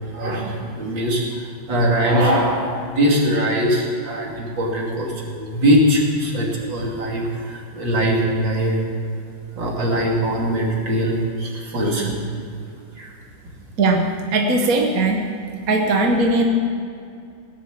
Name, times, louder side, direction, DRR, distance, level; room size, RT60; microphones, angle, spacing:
voice 1, 0.0-8.8 9.5-12.2 13.0-13.1, equal, 70° right, -2 dB, 3.5 m, -21 dB
voice 2, 13.8-15.2 15.7-16.4, right 2 dB, 50° right, 2 dB, 1.5 m, -19 dB
17.5 x 10.5 x 7.4 m, 2.5 s
omnidirectional pair, 2.1 m